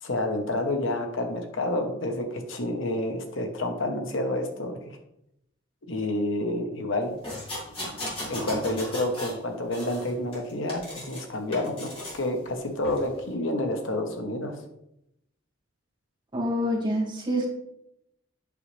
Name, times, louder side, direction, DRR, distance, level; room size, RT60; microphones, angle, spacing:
voice 1, 0.0-5.0 5.9-7.1 8.3-14.6, left 1 dB, 75° left, 4 dB, 1.2 m, -29 dB
sound 1, 7.2-9.4 9.7-11.2 11.5-12.2 12.8-13.0, left 1 dB, 30° left, 2.8 m, -36 dB
voice 2, 16.3-17.5, equal, 25° right, -3 dB, 2.1 m, -26 dB
8.3 x 6.4 x 3.3 m, 0.81 s
head